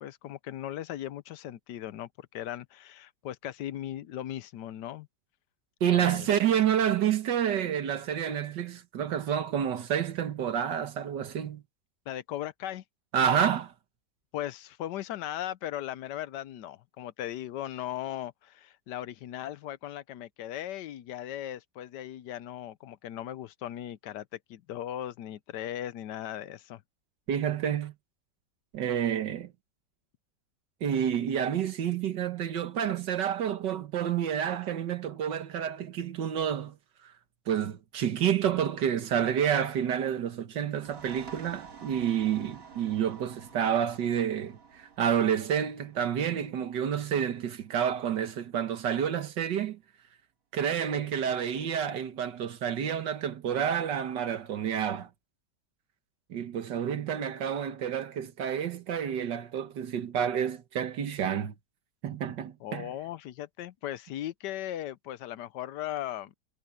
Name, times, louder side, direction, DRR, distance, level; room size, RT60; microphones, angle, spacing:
voice 1, 0.0-5.1 5.9-6.3 12.1-12.8 14.3-26.8 62.6-66.3, left 12 dB, 80° left, 1.3 m, -38 dB
voice 2, 5.8-11.6 13.1-13.7 27.3-27.9 28.7-29.5 30.8-36.8 37.5-49.8 50.5-55.1 56.3-61.5 62.0-62.9, right 9 dB, 85° right, 1.9 m, -29 dB
sound 1, 40.7-48.1, right 6 dB, 55° right, 2.4 m, -50 dB
omnidirectional pair, 1.8 m